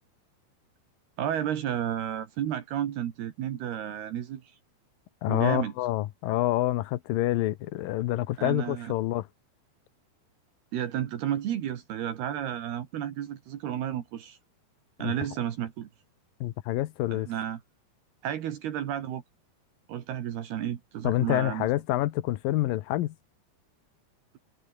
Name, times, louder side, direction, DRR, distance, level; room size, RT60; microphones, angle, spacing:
voice 1, 1.2-4.4 5.3-5.7 8.4-8.9 10.7-14.4 15.0-15.9 17.1-17.6 18.2-19.2 19.9-21.7, right 10 dB, 70° right, 3.7 m, -32 dB
voice 2, 5.2-9.3 15.0-15.1 16.4-17.3 21.0-23.1, left 15 dB, 75° left, 2.2 m, -27 dB
omnidirectional pair, 5.0 m